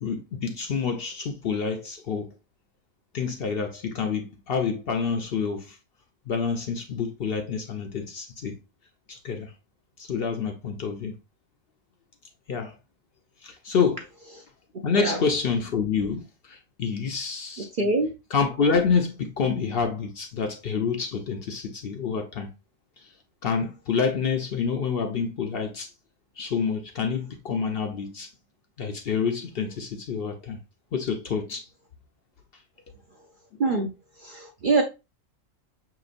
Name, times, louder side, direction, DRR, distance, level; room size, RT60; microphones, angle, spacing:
voice 1, 0.0-2.3 3.1-5.8 6.3-8.6 9.1-9.5 10.0-11.2 12.5-12.7 13.4-14.1 14.8-17.7 18.3-22.5 23.0-23.1 23.4-25.9 26.4-28.3 28.8-30.6 30.9-31.7, left 5 dB, 60° left, 0.7 m, -27 dB
voice 2, 17.8-18.1 33.6-33.9 34.2-34.8, right 3 dB, 55° right, 0.6 m, -23 dB
5.8 x 2.9 x 2.4 m
omnidirectional pair, 1.4 m